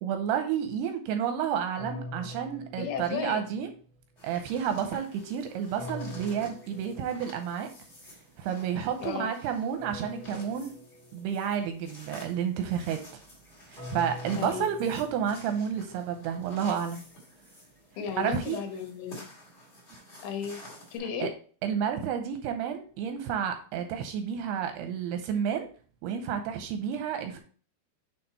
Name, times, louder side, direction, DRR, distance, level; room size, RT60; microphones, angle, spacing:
voice 1, 0.0-3.7 4.2-7.7 8.4-10.7 11.1-13.2 13.7-17.0 18.2-18.6 21.2-21.3 21.6-25.7 26.0-27.4, right 8 dB, 85° right, 6 dB, 2.5 m, -30 dB
sound 1, 1.8-3.8 5.8-7.6 9.8-11.6 13.8-16.0, left 2 dB, ahead, 1.4 m, -44 dB
voice 2, 2.8-3.4 9.0-9.3 14.4-14.7 18.0-19.3 20.2-21.4, left 7 dB, 85° left, 5 dB, 3.3 m, -34 dB
sound 2, 4.2-21.0, right 1 dB, 30° left, 1.2 m, -50 dB
7.9 x 3.6 x 4.1 m, 0.42 s
omnidirectional pair, 5.0 m